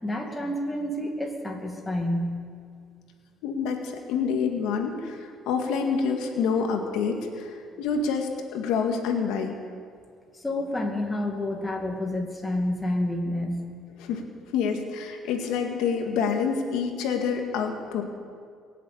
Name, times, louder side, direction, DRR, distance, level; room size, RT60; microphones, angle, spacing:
voice 1, 0.0-2.4 10.3-13.7, left 1 dB, 10° left, 0 dB, 2.3 m, -29 dB
voice 2, 3.4-7.5 7.8-9.6 14.0-14.2 14.5-18.0, left 6 dB, 90° left, 3 dB, 2.0 m, -27 dB
22.0 x 7.6 x 8.6 m, 2.2 s
cardioid pair, 135°, 0 cm